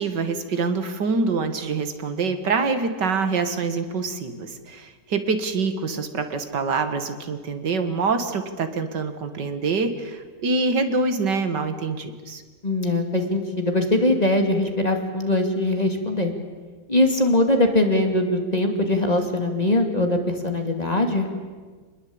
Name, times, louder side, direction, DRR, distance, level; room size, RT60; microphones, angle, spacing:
voice 1, 0.0-12.4, right 4 dB, 85° right, 8 dB, 2.4 m, -25 dB
voice 2, 12.6-16.3 16.9-21.3, left 1 dB, 25° left, 4 dB, 2.7 m, -21 dB
26.5 x 20.5 x 8.8 m, 1.5 s
omnidirectional pair, 1.8 m